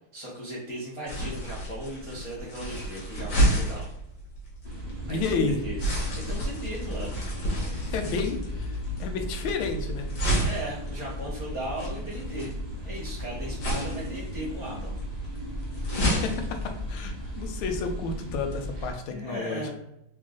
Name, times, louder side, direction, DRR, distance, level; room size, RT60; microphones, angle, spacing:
voice 1, 0.1-3.9 5.1-7.2 7.6-7.9 10.4-12.5 12.8-14.9 15.8-15.9 17.2-17.6 18.7-19.7, right 1 dB, 25° left, -7 dB, 0.6 m, -37 dB
sound 1, 1.1-17.9, right 1 dB, 60° left, 1.7 m, -31 dB
sound 2, 4.6-18.9, equal, 25° right, 0.5 m, -36 dB
voice 2, 5.1-5.6 7.7-10.1 16.0-19.7, left 4 dB, 85° left, 5 dB, 1.4 m, -31 dB
3.7 x 2.4 x 3.6 m, 0.83 s
omnidirectional pair, 2.2 m